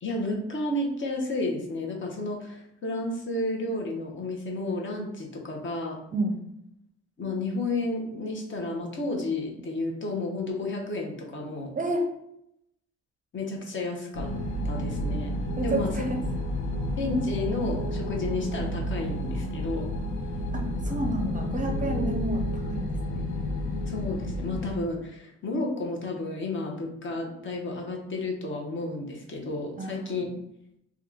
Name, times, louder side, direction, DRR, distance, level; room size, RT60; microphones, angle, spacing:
voice 1, 0.0-6.0 7.2-11.7 13.3-14.3 14.6-15.3 15.6-15.9 17.0-19.9 23.9-30.3, left 2 dB, 40° left, 1 dB, 0.8 m, -31 dB
sound 1, 14.1-24.7, left 1 dB, 90° left, 0.8 m, -31 dB
voice 2, 15.6-16.2 20.5-23.4 29.8-30.3, right 1 dB, 25° right, 2 dB, 0.5 m, -31 dB
2.9 x 2.3 x 3.7 m, 0.78 s
cardioid pair, 90°, 30 cm